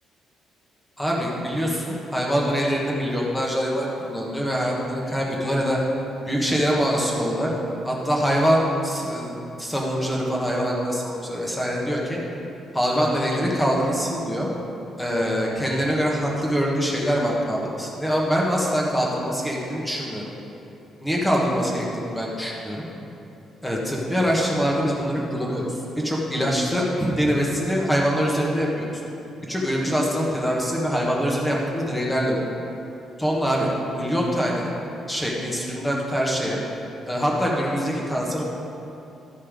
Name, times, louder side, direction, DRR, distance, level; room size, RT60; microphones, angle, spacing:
voice 1, 1.0-5.8 6.3-7.5 7.8-12.2 12.7-14.5 15.0-20.2 21.0-22.8 23.6-25.8 26.0-28.9 29.5-32.5 33.2-34.7 35.1-36.6 37.1-38.4, equal, 5° left, -3 dB, 1.3 m, -24 dB
13.5 x 5.4 x 5.2 m, 2.9 s
cardioid pair, 175°, 0 cm